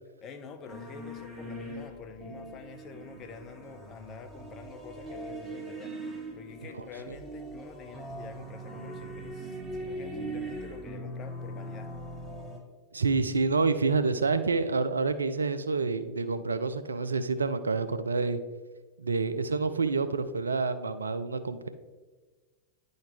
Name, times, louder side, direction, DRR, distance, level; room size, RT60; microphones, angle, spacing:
voice 1, 0.2-6.0 6.3-11.9, left 5 dB, 30° left, 7 dB, 0.7 m, -47 dB
sound 1, 0.7-12.6, right 1 dB, 10° right, 1.3 m, -41 dB
voice 2, 12.9-18.4 19.0-21.7, right 4 dB, 75° right, 11 dB, 0.4 m, -28 dB
10.0 x 3.9 x 3.5 m, 1.4 s
figure-of-eight pair, 90°, 0 cm